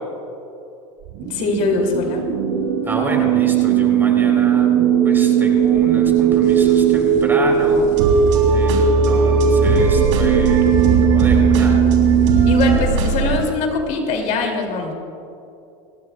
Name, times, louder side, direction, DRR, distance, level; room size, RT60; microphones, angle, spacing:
sound 1, 1.1-12.8, right 9 dB, 60° right, 0.7 m, -17 dB
voice 1, 1.3-2.2 12.5-14.9, left 4 dB, 50° left, 2 dB, 2.5 m, -22 dB
sound 2, 2.1-13.4, right 3 dB, 80° right, 3.2 m, -22 dB
voice 2, 2.9-4.7 5.0-7.9 8.5-11.8, right 1 dB, 15° right, 1 dB, 3.5 m, -29 dB
sound 3, 5.6-13.0, left 5 dB, 75° left, 2.3 m, -37 dB
29.5 x 14.0 x 2.2 m, 2.7 s
supercardioid pair, 120°, 16 cm